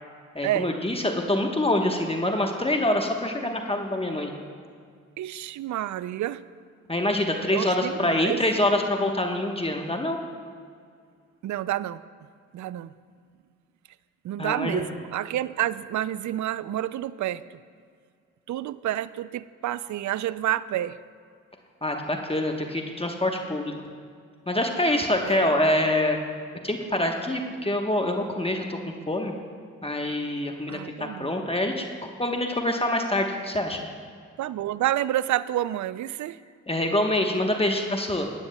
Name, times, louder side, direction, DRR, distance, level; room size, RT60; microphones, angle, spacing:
voice 1, 0.3-4.4 6.9-10.2 14.4-14.8 21.8-23.7 24.5-26.2 26.6-29.3 29.8-31.9 32.2-33.8 36.7-38.3, left 1 dB, 15° left, 2 dB, 1.1 m, -25 dB
voice 2, 5.2-6.4 7.5-8.4 11.4-12.0 12.5-12.9 14.2-17.4 18.5-21.0 25.3-25.5 30.7-31.4 34.4-36.4, right 13 dB, 55° right, 17 dB, 0.4 m, -29 dB
16.0 x 9.5 x 2.3 m, 2.2 s
hypercardioid pair, 45°, 35 cm